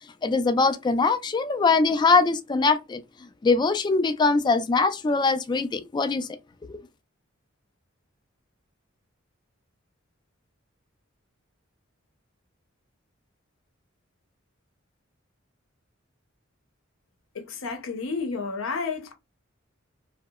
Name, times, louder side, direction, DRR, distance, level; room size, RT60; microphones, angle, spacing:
voice 1, 0.2-3.0 3.4-6.3 6.7-6.8, left 4 dB, 20° left, 0.3 m, -22 dB
voice 2, 17.3-19.1, left 4 dB, 75° left, 0.6 m, -31 dB
2.7 x 2.1 x 2.2 m
head